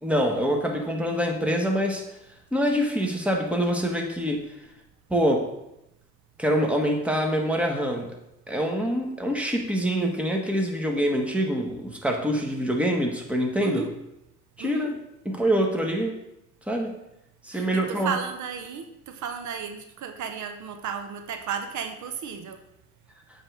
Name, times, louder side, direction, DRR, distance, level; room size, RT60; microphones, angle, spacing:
voice 1, 0.0-2.0 2.5-4.4 5.1-5.5 6.4-8.1 8.5-13.9 14.6-14.9 15.2-16.2 16.7-17.0 17.4-18.1, equal, 5° right, 1 dB, 1.3 m, -25 dB
voice 2, 13.6-13.9 14.6-14.9 17.5-22.6, right 6 dB, 70° right, 7 dB, 0.8 m, -34 dB
7.6 x 3.4 x 6.2 m, 0.85 s
cardioid pair, 90°, 30 cm